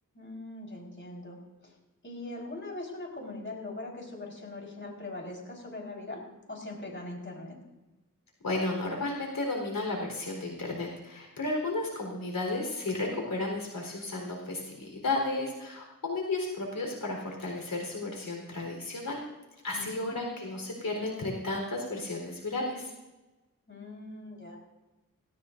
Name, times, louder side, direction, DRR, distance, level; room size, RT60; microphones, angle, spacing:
voice 1, 0.1-1.7 2.0-7.6 19.7-20.1 23.7-24.6, left 2 dB, 35° left, -1 dB, 4.5 m, -41 dB
voice 2, 8.4-19.2 19.6-22.9, left 2 dB, 75° left, 0 dB, 4.2 m, -33 dB
18.5 x 17.5 x 2.6 m, 1.1 s
wide cardioid pair, 65°, 34 cm